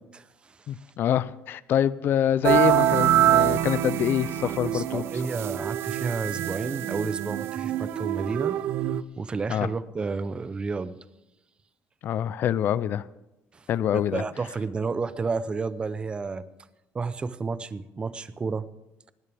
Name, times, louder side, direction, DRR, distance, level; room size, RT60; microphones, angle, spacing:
voice 1, 0.1-0.6 4.4-8.6 8.9-11.0 13.5-13.7 13.9-16.4 16.9-18.7, right 4 dB, 25° right, 15 dB, 0.7 m, -31 dB
voice 2, 0.7-5.0 9.5-9.7 12.0-13.0 13.7-14.2, left 10 dB, 55° left, 18 dB, 0.5 m, -25 dB
sound 1, 2.4-9.0, right 12 dB, 65° right, 0.6 m, -25 dB
19.0 x 16.0 x 3.5 m, 0.93 s
cardioid pair, 140°, 4 cm